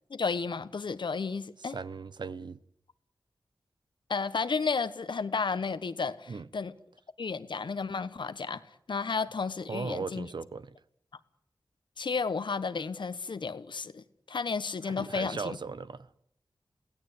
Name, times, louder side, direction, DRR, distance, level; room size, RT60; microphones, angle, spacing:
voice 1, 0.1-1.8 4.1-6.7 7.2-8.6 8.9-10.3 12.0-15.6, left 5 dB, 75° left, 1.2 m, -32 dB
voice 2, 1.6-2.6 6.3-6.5 9.7-10.7 14.8-16.1, right 4 dB, 65° right, 0.9 m, -38 dB
23.0 x 17.0 x 8.4 m
cardioid pair, 50°, 8 cm